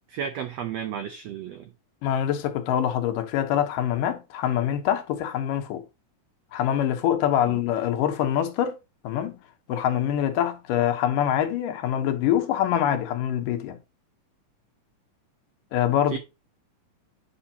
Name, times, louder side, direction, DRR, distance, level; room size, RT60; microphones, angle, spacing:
voice 1, 0.1-1.7 7.5-7.6 16.1-16.2, right 8 dB, 85° right, 1.4 m, -33 dB
voice 2, 2.0-5.8 6.5-9.4 9.7-13.8 15.7-16.2, left 10 dB, 85° left, 2.5 m, -25 dB
9.9 x 5.6 x 2.8 m
omnidirectional pair, 3.8 m